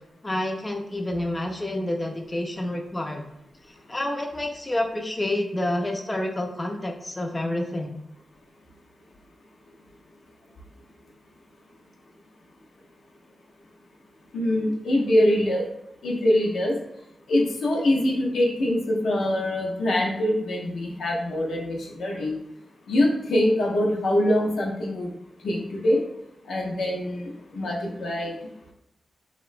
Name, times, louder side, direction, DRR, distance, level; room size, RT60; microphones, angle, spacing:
voice 1, 0.2-3.2 3.9-8.0, left 1 dB, 25° left, 2 dB, 0.4 m, -28 dB
voice 2, 14.3-15.6 16.0-16.7 17.3-22.3 22.9-25.1 25.4-26.0 26.5-28.3, left 1 dB, 80° left, -1 dB, 0.5 m, -24 dB
2.9 x 2.1 x 2.4 m, 0.80 s
cardioid pair, 55°, 0 cm